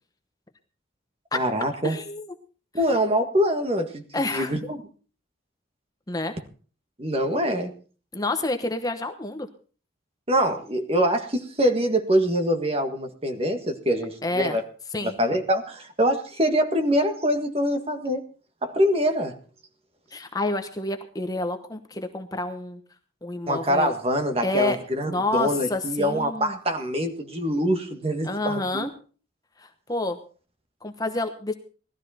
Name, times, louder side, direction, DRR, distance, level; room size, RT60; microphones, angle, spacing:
voice 1, 1.3-2.0 2.7-4.0 4.3-4.8 7.0-7.7 10.3-14.6 15.0-18.2 18.6-19.3 23.5-28.9, equal, 30° right, 6 dB, 1.7 m, -24 dB
voice 2, 1.8-2.3 4.1-4.6 6.1-6.3 8.1-9.5 14.2-14.6 14.9-15.1 20.1-22.8 23.2-23.9 24.4-24.8 25.1-26.6 28.2-28.9 29.6-30.2 30.8-31.5, left 2 dB, 20° left, 6 dB, 1.0 m, -28 dB
18.0 x 13.0 x 4.3 m, 0.39 s
head